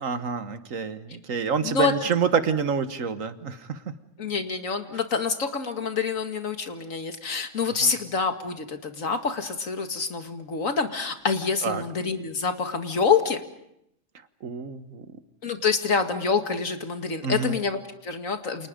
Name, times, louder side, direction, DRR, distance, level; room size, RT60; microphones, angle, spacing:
voice 1, 0.0-3.8 7.8-7.9 11.6-11.8 14.4-15.0 17.2-17.6, right 5 dB, 80° right, 10 dB, 1.7 m, -27 dB
voice 2, 4.2-13.4 15.4-18.7, left 5 dB, 85° left, 6 dB, 2.3 m, -27 dB
29.5 x 27.5 x 5.2 m, 0.78 s
omnidirectional pair, 1.3 m